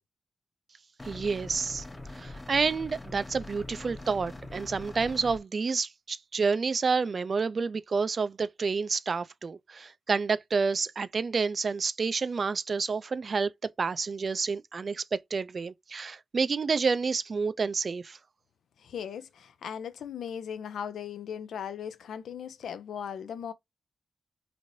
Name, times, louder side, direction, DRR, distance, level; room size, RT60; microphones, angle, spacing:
sound 1, 1.0-5.4, left 2 dB, 20° left, 0.7 m, -43 dB
voice 1, 1.0-1.8 2.1-13.5 13.8-18.2, right 4 dB, 55° right, 0.3 m, -29 dB
voice 2, 18.8-23.5, left 8 dB, 85° left, 0.4 m, -38 dB
3.1 x 2.6 x 2.6 m
cardioid pair, 60°, 0 cm